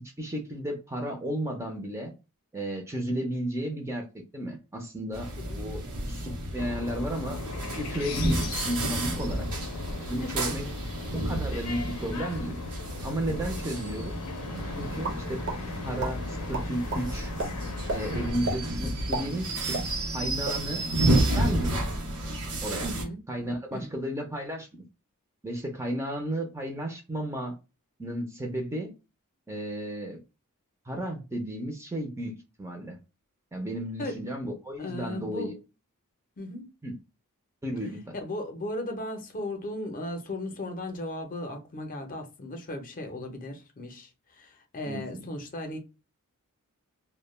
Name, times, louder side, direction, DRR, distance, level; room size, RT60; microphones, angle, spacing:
voice 1, 0.2-2.1 2.5-4.0 4.3-5.3 5.6-7.4 7.8-9.5 10.1-10.7 11.2-12.6 13.0-14.1 14.8-15.4 15.8-17.3 17.9-19.9 20.1-20.9 21.3-21.8 22.6-22.9 23.3-24.8 25.4-27.6 28.0-28.9 29.5-30.2 30.9-33.0 33.5-35.6 36.8-36.9 37.6-38.1 44.9-45.3, right 1 dB, 10° right, 0.4 m, -33 dB
sound 1, 5.1-23.0, right 1 dB, 85° right, 0.8 m, -31 dB
sound 2, 6.6-18.3, left 4 dB, 85° left, 0.5 m, -39 dB
voice 2, 10.2-10.5 22.8-23.2 23.7-23.9 34.0-34.1 34.8-35.5 36.4-36.6 38.1-45.8, left 1 dB, 40° left, 0.5 m, -36 dB
sound 3, 15.0-15.6 16.0-16.1 16.5-17.0 17.4-17.5 17.9-18.0 18.4-18.6 19.0-20.2 20.4-20.6 21.0-21.3, right 2 dB, 55° right, 0.6 m, -31 dB
2.2 x 2.1 x 3.0 m
head